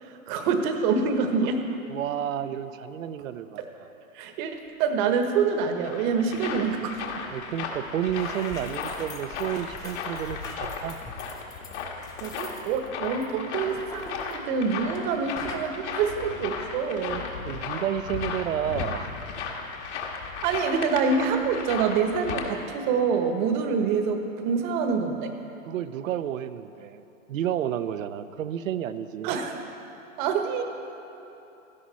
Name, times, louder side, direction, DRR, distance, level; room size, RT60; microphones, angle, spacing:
voice 1, 0.0-1.6 3.6-3.7 4.1-7.3 12.2-17.3 20.4-25.3 29.2-29.5 30.2-30.6, right 5 dB, 35° right, 5 dB, 1.3 m, -26 dB
voice 2, 1.9-3.9 7.3-11.0 17.4-19.1 25.7-27.0 27.3-29.3, right 10 dB, 70° right, 12 dB, 0.8 m, -31 dB
sound 1, 5.4-22.5, left 5 dB, 55° left, 1.9 m, -35 dB
sound 2, 8.0-15.1 15.4-15.7, left 4 dB, 10° left, 0.5 m, -43 dB
16.5 x 12.5 x 4.2 m, 2.9 s
hypercardioid pair, 145°, 41 cm